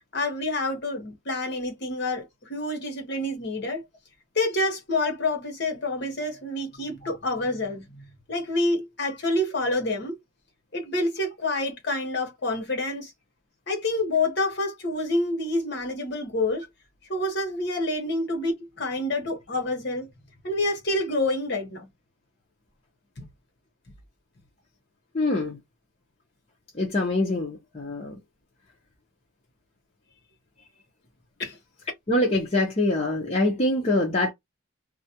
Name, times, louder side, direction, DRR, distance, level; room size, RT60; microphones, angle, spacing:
voice 1, 0.1-3.8 4.3-7.9 8.3-10.2 10.7-13.1 13.7-16.7 17.1-20.1 20.4-21.9 23.2-23.3 31.4-31.6, left 2 dB, 55° left, 1.0 m, -27 dB
voice 2, 25.1-25.6 26.7-28.1 32.1-34.3, left 2 dB, 30° left, 0.6 m, -24 dB
2.4 x 2.1 x 2.7 m
head